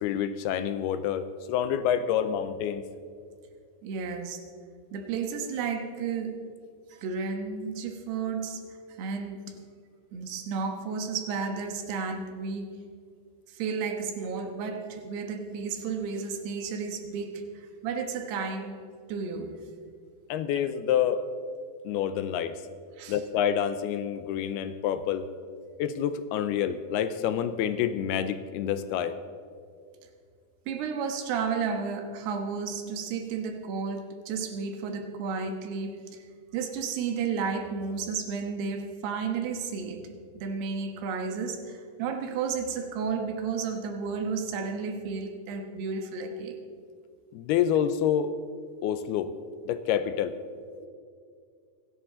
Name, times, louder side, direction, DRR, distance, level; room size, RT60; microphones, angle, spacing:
voice 1, 0.0-2.8 20.3-21.2 21.8-22.6 23.1-25.3 25.8-29.2 47.3-48.3 48.8-49.3 49.7-50.4, left 9 dB, 85° left, 11 dB, 2.6 m, -27 dB
voice 2, 3.8-4.4 4.9-6.4 6.9-8.6 9.0-9.5 10.1-12.8 13.6-18.8 19.1-19.6 23.0-23.2 30.7-36.0 36.5-40.1 40.3-46.6 50.8-50.9, right 5 dB, 80° right, 5 dB, 3.4 m, -32 dB
26.0 x 11.0 x 3.8 m, 2.2 s
omnidirectional pair, 4.7 m